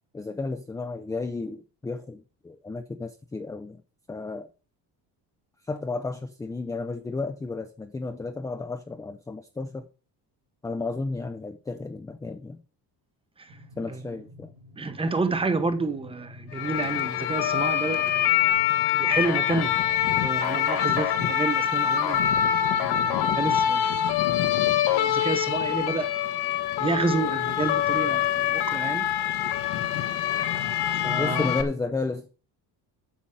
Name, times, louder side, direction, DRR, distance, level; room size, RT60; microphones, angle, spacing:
voice 1, 0.1-3.8 4.1-4.5 5.7-9.9 10.6-12.6 13.8-14.5 31.2-32.3, left 3 dB, 10° left, 0.5 m, -33 dB
sound 1, 13.5-21.7, left 2 dB, 50° right, 1.9 m, -49 dB
voice 2, 14.8-18.3 19.0-19.8 20.1-22.5 22.8-24.0 24.9-26.1 26.8-29.1 30.9-31.5, right 3 dB, 15° right, 0.9 m, -29 dB
sound 2, 16.5-31.6, left 10 dB, 70° left, 1.5 m, -25 dB
8.5 x 7.0 x 7.5 m
cardioid pair, 175°, 42 cm